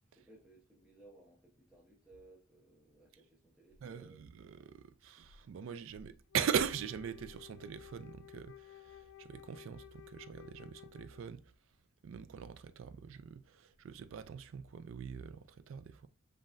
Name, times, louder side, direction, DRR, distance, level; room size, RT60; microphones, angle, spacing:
voice 1, 0.0-4.3, right 2 dB, 5° right, 0.9 m, -61 dB
voice 2, 3.8-11.5 12.0-16.1, right 8 dB, 65° right, 0.3 m, -41 dB
Wind instrument woodwind instrument, 6.3-11.5, left 13 dB, 75° left, 0.5 m, -55 dB
7.2 x 2.6 x 2.5 m
head